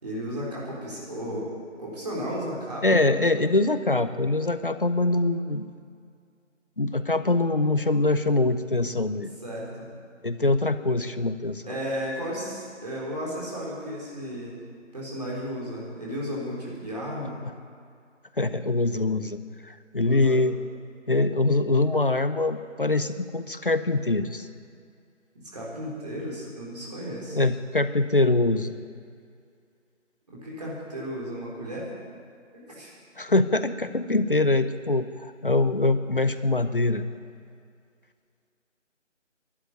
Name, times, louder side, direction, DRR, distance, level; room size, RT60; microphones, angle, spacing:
voice 1, 0.0-1.5 1.8-3.0 9.4-9.9 11.7-14.6 14.9-17.4 20.0-20.4 25.5-27.4 30.3-31.9 32.5-32.9, equal, 30° right, -5 dB, 3.9 m, -34 dB
voice 2, 2.8-5.7 6.8-9.3 10.2-11.7 18.4-20.6 21.1-24.5 27.3-28.7 33.2-37.0, left 2 dB, 45° left, 11 dB, 0.7 m, -24 dB
12.0 x 11.0 x 9.6 m, 2.3 s
figure-of-eight pair, 170°, 38 cm